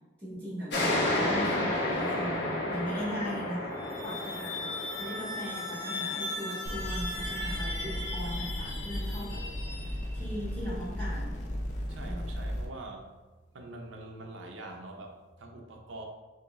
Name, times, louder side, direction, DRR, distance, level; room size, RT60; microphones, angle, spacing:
voice 1, 0.2-3.7 4.0-9.4 10.1-11.4 12.0-12.3, equal, 10° left, -11 dB, 1.4 m, -38 dB
sound 1, 0.7-7.9, left 1 dB, 55° left, 0.9 m, -32 dB
sound 2, 3.7-10.3, left 2 dB, 85° left, 0.9 m, -38 dB
sound 3, 6.7-12.7, equal, 35° left, 0.4 m, -35 dB
voice 2, 11.9-13.1 13.5-16.0, right 2 dB, 70° right, 2 dB, 0.6 m, -44 dB
3.5 x 2.6 x 3.0 m, 1.2 s
head